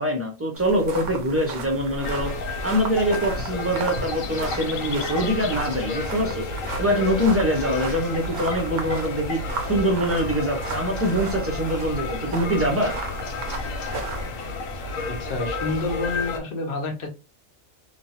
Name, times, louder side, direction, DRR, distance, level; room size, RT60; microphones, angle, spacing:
voice 1, 0.0-2.3 2.6-6.4 6.8-12.9, equal, 15° right, 0.6 m, -24 dB
sound 1, 0.5-14.3, right 3 dB, 70° right, 1.0 m, -35 dB
sound 2, 2.0-16.4, left 3 dB, 80° left, 1.1 m, -31 dB
voice 2, 15.1-17.1, left 3 dB, 50° left, 0.8 m, -29 dB
2.9 x 2.2 x 2.7 m
omnidirectional pair, 1.3 m